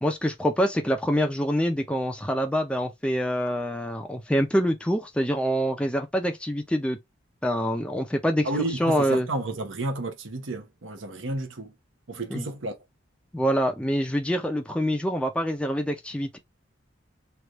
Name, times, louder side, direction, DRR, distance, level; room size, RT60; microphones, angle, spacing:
voice 1, 0.0-7.0 7.4-8.5 8.8-9.3 12.3-12.5 13.3-16.4, equal, 5° left, 0.5 m, -25 dB
voice 2, 8.4-11.7 12.1-12.8, right 2 dB, 75° right, 0.9 m, -31 dB
3.4 x 2.5 x 3.0 m
head